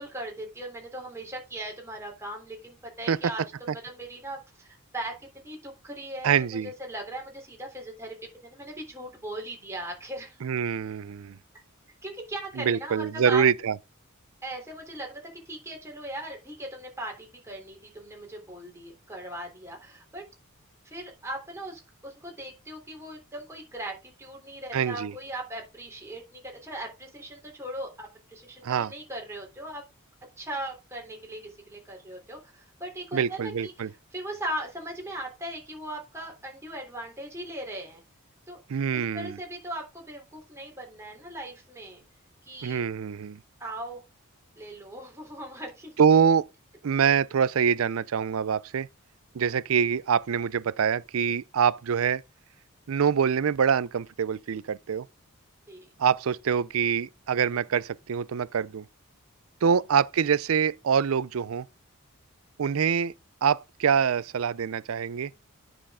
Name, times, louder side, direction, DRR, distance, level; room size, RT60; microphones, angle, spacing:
voice 1, 0.0-5.2 5.4-10.4 12.0-13.4 14.4-20.2 20.8-29.8 30.4-38.0 38.5-38.6 38.9-42.0 42.4-42.9 43.6-44.0 44.5-45.9 55.7-55.9, right 1 dB, 15° right, 3.5 m, -39 dB
voice 2, 6.2-6.7 10.4-11.4 12.6-13.7 24.7-25.1 28.6-28.9 33.1-33.9 38.7-39.3 42.6-43.4 46.0-46.4 46.8-48.9 49.3-52.2 52.9-55.1 56.0-58.8 59.6-61.7 62.6-63.1 63.4-65.3, right 7 dB, 70° right, 0.4 m, -25 dB
10.0 x 6.3 x 3.7 m
head